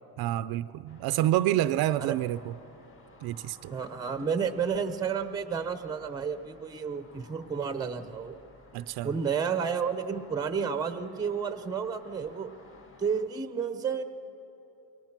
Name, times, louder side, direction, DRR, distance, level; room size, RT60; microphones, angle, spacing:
voice 1, 0.2-2.5 3.2-3.7 8.7-9.1, right 14 dB, 60° right, 0.5 m, -28 dB
sound 1, 0.9-13.2, left 2 dB, 30° left, 1.8 m, -56 dB
voice 2, 3.7-8.4 9.0-12.5 13.0-14.0, right 6 dB, 10° right, 0.7 m, -31 dB
27.0 x 22.5 x 6.0 m
cardioid pair, 165°, 42 cm